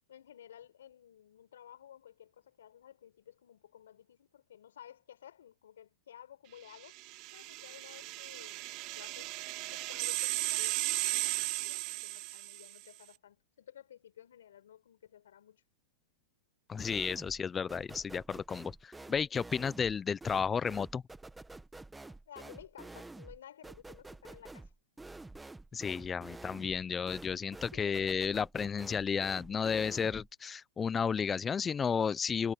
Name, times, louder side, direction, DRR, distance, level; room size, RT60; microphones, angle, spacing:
voice 1, 0.1-7.0 7.3-15.6 22.3-24.7 27.7-28.2, left 10 dB, 80° left, 6.8 m, -54 dB
sound 1, 6.9-12.8, right 21 dB, 45° right, 1.6 m, -36 dB
voice 2, 16.7-21.0 25.7-32.5, left 6 dB, 15° left, 0.5 m, -33 dB
Scream Wobble, 16.8-17.4 17.7-30.3, right 2 dB, 5° right, 1.1 m, -49 dB
hypercardioid pair, 135°, 0 cm